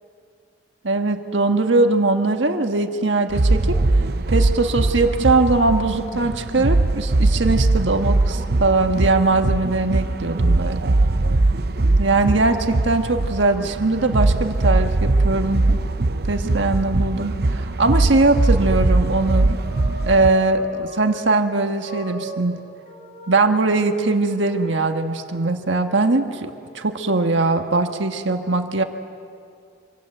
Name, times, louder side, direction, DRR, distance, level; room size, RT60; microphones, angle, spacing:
voice 1, 0.8-3.8 4.3-11.0 12.0-15.8 16.3-19.5 20.1-22.6 23.3-28.8, right 3 dB, 75° right, 5 dB, 1.5 m, -21 dB
sound 1, 3.3-20.3, right 2 dB, 50° right, 0.7 m, -21 dB
sound 2, 18.1-21.3 21.8-23.8 24.4-26.4, right 1 dB, 35° left, 5.4 m, -39 dB
26.5 x 25.5 x 7.9 m, 2.4 s
head